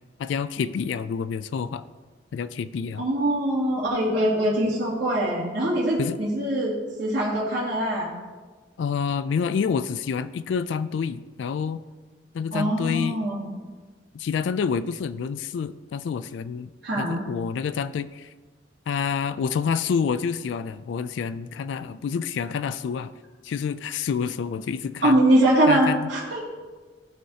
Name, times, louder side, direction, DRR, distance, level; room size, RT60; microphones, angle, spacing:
voice 1, 0.2-1.8 2.3-3.0 6.0-6.2 8.8-11.8 12.3-13.2 14.1-18.3 18.9-23.1 23.4-25.2 25.7-26.1, left 6 dB, 80° left, 13 dB, 0.3 m, -28 dB
voice 2, 3.0-8.1 12.5-13.4 16.8-17.2 25.0-26.4, right 1 dB, 75° right, -7 dB, 2.7 m, -23 dB
15.5 x 5.5 x 2.8 m, 1.4 s
head